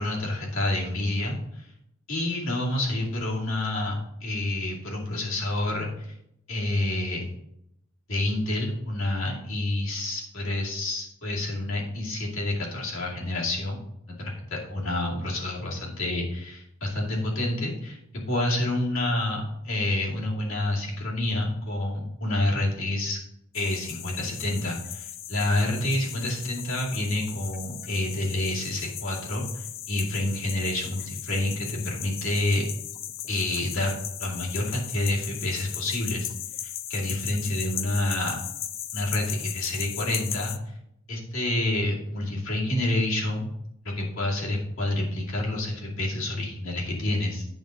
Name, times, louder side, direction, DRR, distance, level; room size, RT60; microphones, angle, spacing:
voice 1, 0.0-1.7 2.1-4.0 4.2-6.1 6.5-7.2 8.1-13.8 14.2-23.2 23.5-32.6 33.3-33.9 34.2-36.3 36.9-38.4 38.9-40.6 41.1-43.5 43.8-47.5, left 1 dB, 75° left, -4 dB, 2.5 m, -28 dB
sound 1, 23.5-40.6, left 11 dB, 45° left, 0.4 m, -37 dB
9.0 x 3.9 x 6.4 m, 0.77 s
head